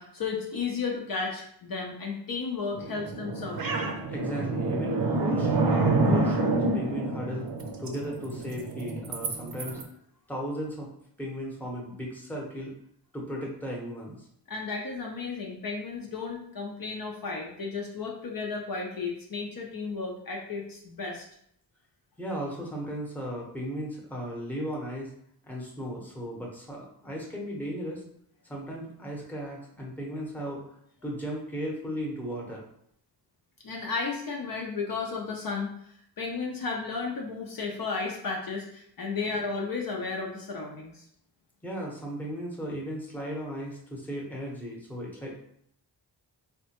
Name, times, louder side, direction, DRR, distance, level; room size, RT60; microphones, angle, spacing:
voice 1, 0.0-3.8 14.5-21.2 33.6-35.7 36.2-41.0, left 4 dB, 55° left, -1 dB, 0.6 m, -33 dB
sound 1, 2.7-9.8, right 3 dB, 55° right, 0.6 m, -28 dB
voice 2, 4.1-7.5 7.8-9.8 10.3-10.9 11.2-12.7 13.1-14.3 22.2-25.1 25.4-28.0 28.4-30.6 31.0-32.6 41.6-45.3, equal, 5° left, -3 dB, 0.8 m, -36 dB
3.5 x 2.2 x 2.8 m, 0.69 s
wide cardioid pair, 80°, 43 cm